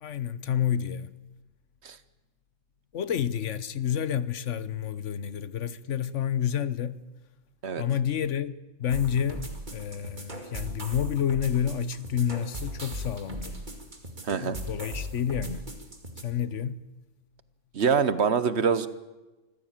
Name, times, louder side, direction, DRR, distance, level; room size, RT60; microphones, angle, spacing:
voice 1, 0.0-1.1 2.9-7.0 7.8-13.6 14.4-15.6 16.2-16.8, left 9 dB, 65° left, 1.2 m, -29 dB
sound 1, 8.9-16.2, equal, 35° right, 2.5 m, -38 dB
voice 2, 14.2-14.6 17.7-18.9, right 6 dB, 55° right, 1.2 m, -24 dB
25.0 x 15.5 x 8.9 m
omnidirectional pair, 1.4 m